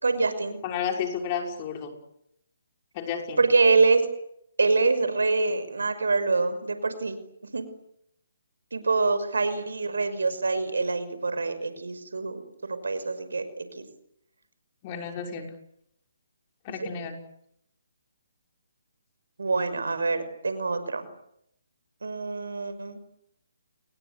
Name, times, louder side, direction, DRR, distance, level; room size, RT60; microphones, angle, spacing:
voice 1, 0.0-0.6 3.4-4.0 4.6-7.2 7.5-7.6 8.7-13.7 19.4-21.1 22.0-23.0, right 3 dB, 80° right, 11 dB, 5.9 m, -25 dB
voice 2, 0.6-1.9 2.9-3.4 14.8-15.5 16.6-17.2, left 7 dB, 30° left, 3 dB, 6.0 m, -31 dB
29.5 x 22.0 x 8.4 m, 0.74 s
hypercardioid pair, 150°, 0 cm